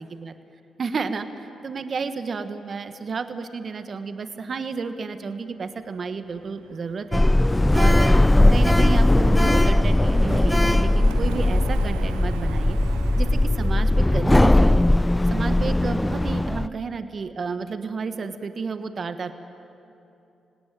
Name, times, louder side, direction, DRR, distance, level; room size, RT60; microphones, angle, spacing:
voice 1, 0.8-7.2 7.7-8.2 8.5-12.8 13.2-14.9 15.3-19.3, right 4 dB, 50° right, 9 dB, 1.4 m, -31 dB
Car passing by, 5.8-14.3, right 13 dB, 90° right, 0.5 m, -42 dB
Sliding door, 7.1-16.7, left 1 dB, 15° left, 0.5 m, -19 dB
27.5 x 18.5 x 9.2 m, 2.8 s
hypercardioid pair, 50°, 0 cm